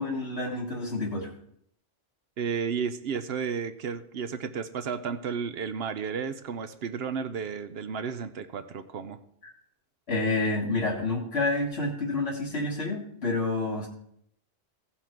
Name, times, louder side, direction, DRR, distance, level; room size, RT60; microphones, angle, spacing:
voice 1, 0.0-1.3 9.4-9.5 10.1-13.9, left 2 dB, 85° left, -5 dB, 2.1 m, -29 dB
voice 2, 2.4-9.2, right 6 dB, 75° right, 11 dB, 0.9 m, -33 dB
16.5 x 5.8 x 4.5 m, 0.70 s
omnidirectional pair, 1.0 m